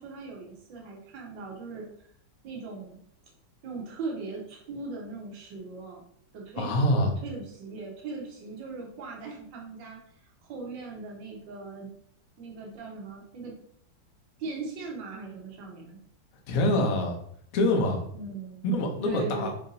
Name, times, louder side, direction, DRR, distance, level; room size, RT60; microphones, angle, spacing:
voice 1, 0.0-1.9 2.4-3.0 3.6-6.0 6.3-11.9 12.4-13.6 14.4-16.0 18.1-19.5, right 3 dB, 70° right, -1 dB, 1.5 m, -39 dB
voice 2, 6.6-7.1 16.5-17.2 17.5-18.0 18.6-19.5, left 1 dB, 70° left, 1 dB, 0.8 m, -25 dB
4.7 x 2.7 x 2.6 m, 0.64 s
omnidirectional pair, 2.3 m